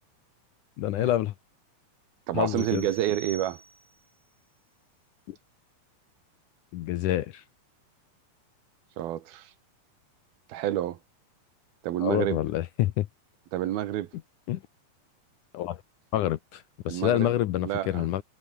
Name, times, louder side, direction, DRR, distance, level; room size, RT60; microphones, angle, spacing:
voice 1, 0.8-1.3 2.3-2.9 5.3-5.4 6.7-7.4 12.0-13.1 14.5-14.6 15.5-15.8 16.1-18.2, left 13 dB, 70° left, 2.1 m, -27 dB
voice 2, 2.3-3.6 9.0-9.5 10.5-11.0 11.8-12.4 13.5-14.1 16.9-17.3 17.6-18.1, right 13 dB, 80° right, 3.3 m, -29 dB
sound 1, 2.6-4.1, right 4 dB, 30° right, 4.4 m, -46 dB
omnidirectional pair, 4.3 m